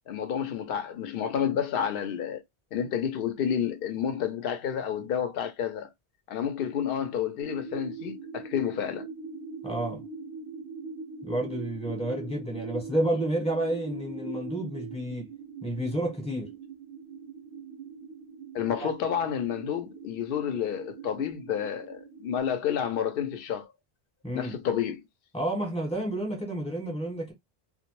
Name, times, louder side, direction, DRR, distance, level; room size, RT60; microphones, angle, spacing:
voice 1, 0.1-2.4 2.7-5.9 6.3-9.1 18.5-23.7 24.3-25.0, left 8 dB, 65° left, 0.7 m, -30 dB
sound 1, 7.4-22.4, right 5 dB, 90° right, 0.9 m, -42 dB
voice 2, 9.6-10.0 11.2-15.3 15.6-16.5 18.8-18.9 24.2-24.6 25.3-27.3, right 1 dB, 5° left, 0.9 m, -30 dB
2.1 x 2.1 x 2.9 m
omnidirectional pair, 1.1 m